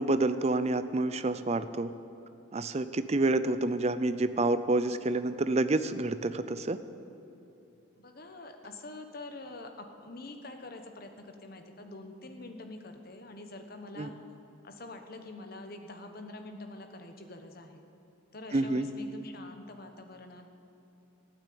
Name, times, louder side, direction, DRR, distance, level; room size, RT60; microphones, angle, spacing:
voice 1, 0.0-1.9 2.5-6.8 14.0-14.1 18.5-18.9, right 2 dB, 30° right, 12 dB, 0.5 m, -28 dB
voice 2, 8.0-14.1 14.6-17.8 18.3-20.5, left 2 dB, 45° left, 5 dB, 1.1 m, -45 dB
14.0 x 9.1 x 8.5 m, 2.8 s
head